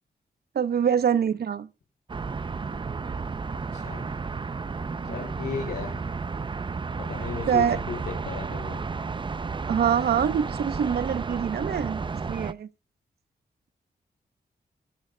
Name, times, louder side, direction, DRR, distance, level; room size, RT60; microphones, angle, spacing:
voice 1, 0.5-1.7 7.5-7.8 9.7-12.0 12.3-12.7, right 8 dB, 75° right, 0.9 m, -24 dB
sound 1, 2.1-12.5, right 4 dB, 30° right, 0.6 m, -32 dB
voice 2, 3.5-4.0 5.0-6.0 7.1-8.8, left 6 dB, 85° left, 3.8 m, -35 dB
25.0 x 10.5 x 2.3 m
wide cardioid pair, 110°, 17 cm